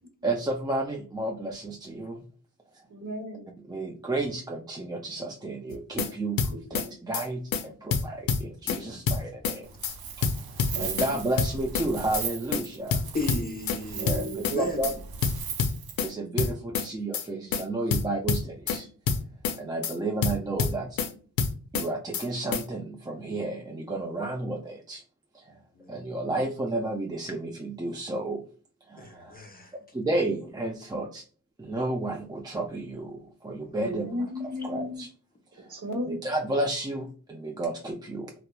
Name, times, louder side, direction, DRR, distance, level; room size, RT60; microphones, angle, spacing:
voice 1, 0.2-2.2 3.7-9.7 10.2-10.3 10.8-13.0 14.0-14.3 14.5-14.9 16.0-18.9 19.6-21.0 21.7-25.0 25.3-25.5 25.9-28.4 28.9-29.4 29.9-31.2 31.6-34.2 34.6-35.1 35.5-35.7 36.1-38.3, right 2 dB, 10° right, 0.3 m, -32 dB
voice 2, 2.9-3.5 6.5-6.9 10.7-11.2 13.9-14.6 33.8-35.0 35.7-36.2, left 1 dB, 50° right, 1.0 m, -35 dB
sound 1, 5.7-6.1 6.4-6.9 7.1-7.3 7.5-7.6 7.9-8.8 9.1-9.6 9.8-9.9 10.2-11.1 11.4-11.9 12.1-12.3 12.5-12.6 12.9-13.8 14.1-14.6 14.8-14.9 15.2-16.1 16.4-16.9 17.1-17.3 17.5-17.6 17.9-18.8 19.1-19.6 19.8-19.9 20.2-21.1 21.4-21.9 22.1-22.3 22.5-22.6, left 6 dB, 65° left, 0.5 m, -27 dB
Wind, 9.6-16.1, right 6 dB, 70° right, 0.5 m, -38 dB
voice 3, 13.1-14.9 25.8-25.9 29.0-29.7 33.6-33.7, left 2 dB, 25° left, 0.7 m, -35 dB
2.8 x 2.0 x 2.2 m
cardioid pair, 50°, 37 cm